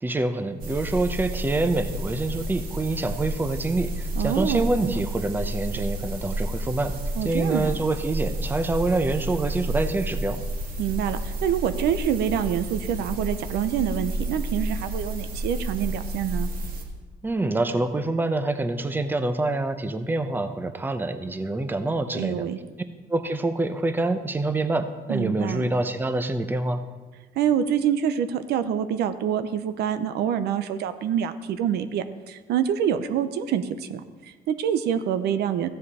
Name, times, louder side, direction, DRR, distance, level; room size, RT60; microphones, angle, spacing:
voice 1, 0.0-6.9 7.2-10.4 17.2-22.4 23.1-26.8, right 2 dB, 10° right, 9 dB, 0.7 m, -26 dB
sound 1, 0.6-16.8, right 1 dB, 60° right, 2.3 m, -31 dB
voice 2, 4.2-5.0 7.2-7.8 10.8-16.5 22.1-22.6 25.1-25.7 27.4-35.7, right 9 dB, 75° right, 10 dB, 0.7 m, -26 dB
15.0 x 7.6 x 4.2 m, 1.3 s
cardioid pair, 110°, 17 cm